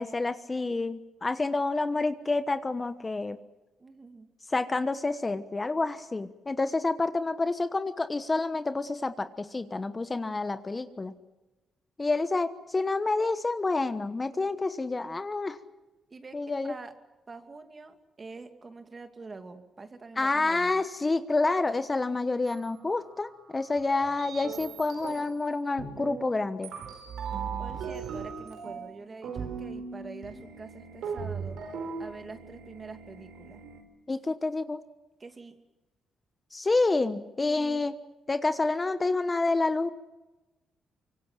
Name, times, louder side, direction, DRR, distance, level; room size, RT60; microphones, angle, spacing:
voice 1, 0.0-3.4 4.5-11.1 12.0-15.6 16.3-16.7 20.2-26.7 34.1-34.8 36.5-37.9 38.3-39.9, left 3 dB, 25° left, 11 dB, 1.1 m, -28 dB
voice 2, 3.8-4.3 16.1-16.4 16.6-16.9 17.3-20.8 27.6-31.6 32.0-33.6 35.2-35.5 37.4-37.8, right 3 dB, 30° right, 7 dB, 2.6 m, -45 dB
sound 1, 22.5-22.7 23.2-23.3 23.8-25.4 25.8-26.3 26.6-33.8, right 6 dB, 80° right, 4.4 m, -38 dB
25.0 x 23.5 x 7.5 m, 1.1 s
cardioid pair, 95°, 0 cm